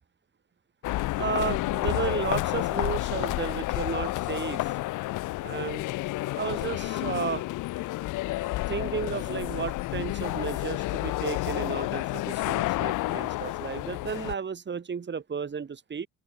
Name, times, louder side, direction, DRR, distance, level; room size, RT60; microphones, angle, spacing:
sound 1, 0.8-14.3, left 18 dB, 85° left, 0.6 m, -30 dB
voice 1, 1.2-4.7 5.4-5.8 6.3-7.4 8.7-16.1, right 6 dB, 35° right, 2.2 m, -33 dB
cardioid pair, 90°, 30 cm